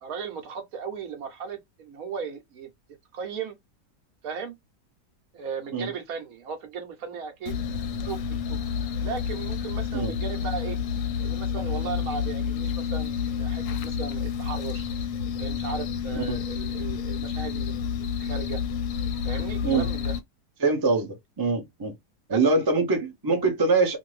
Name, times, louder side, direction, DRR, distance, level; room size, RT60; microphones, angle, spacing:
voice 1, 0.0-2.7 3.1-3.5 4.2-4.5 5.3-7.6 8.0-8.6 9.0-10.8 11.2-14.9 15.3-17.9 18.2-18.6 19.2-20.1 22.3-22.4, right 6 dB, 65° right, 1.1 m, -36 dB
sound 1, 7.5-20.2, left 7 dB, 65° left, 0.9 m, -29 dB
voice 2, 20.6-21.1 21.4-21.9 22.3-24.0, right 3 dB, 35° right, 0.3 m, -23 dB
2.6 x 2.5 x 3.1 m
omnidirectional pair, 1.7 m